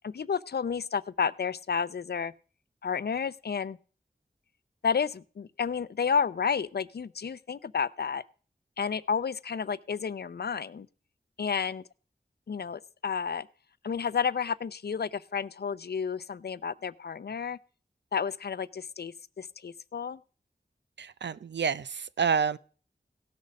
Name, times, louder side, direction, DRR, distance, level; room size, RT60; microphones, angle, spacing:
voice 1, 0.0-2.3 2.8-3.8 4.8-8.2 8.8-10.9 11.4-11.8 12.5-13.5 13.8-17.6 18.1-20.2, left 6 dB, 65° left, 0.5 m, -31 dB
voice 2, 21.0-22.6, right 6 dB, 80° right, 0.5 m, -28 dB
17.0 x 6.4 x 5.2 m
wide cardioid pair, 50°, 18 cm